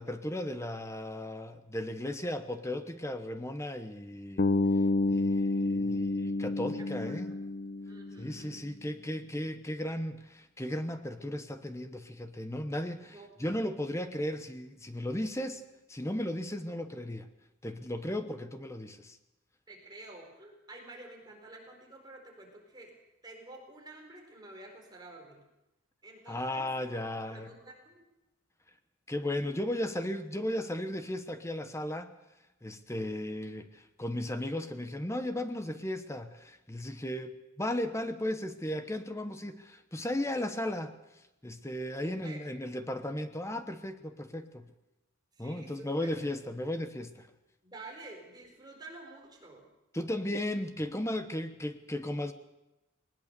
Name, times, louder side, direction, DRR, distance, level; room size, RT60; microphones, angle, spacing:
voice 1, 0.0-4.4 5.1-7.3 8.2-15.6 15.9-17.3 17.6-19.2 26.3-27.5 29.1-32.1 32.6-40.9 41.4-44.7 45.4-47.3 49.9-52.3, left 1 dB, 15° left, 9 dB, 1.0 m, -35 dB
Bass guitar, 4.4-8.5, left 2 dB, 45° left, 0.7 m, -29 dB
voice 2, 6.8-7.4 7.8-8.6 13.1-13.3 19.7-22.9 23.2-25.4 26.0-27.0 27.3-28.0 42.0-42.4 45.3-46.2 47.6-49.7, right 2 dB, 20° right, 1 dB, 4.4 m, -50 dB
20.0 x 19.5 x 6.8 m, 0.96 s
head